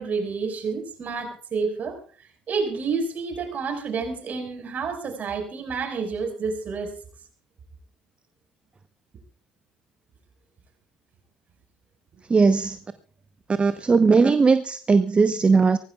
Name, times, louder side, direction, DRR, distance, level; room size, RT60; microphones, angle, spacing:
voice 1, 0.0-2.0 2.5-6.9, right 4 dB, 45° right, 4 dB, 5.3 m, -29 dB
voice 2, 12.3-12.8 13.6-15.8, right 4 dB, 30° right, 12 dB, 0.9 m, -18 dB
24.5 x 17.5 x 2.4 m, 0.39 s
figure-of-eight pair, 50°, 4 cm